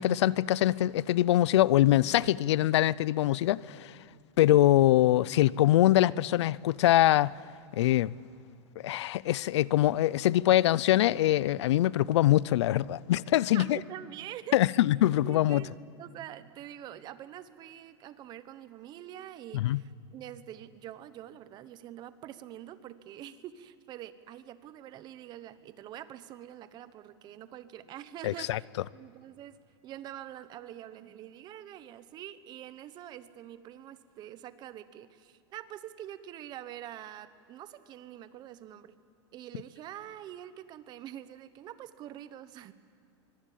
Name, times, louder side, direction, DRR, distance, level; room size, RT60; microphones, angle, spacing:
voice 1, 0.0-4.0 4.4-7.3 7.8-8.1 8.8-13.8 14.5-15.6 19.5-19.8 28.2-28.6, left 14 dB, 75° left, 0.5 m, -23 dB
voice 2, 13.5-14.6 15.2-28.7 28.9-29.6 29.8-39.0 39.3-42.7, right 12 dB, 30° right, 1.0 m, -45 dB
24.0 x 23.5 x 8.5 m
supercardioid pair, 150°, 15 cm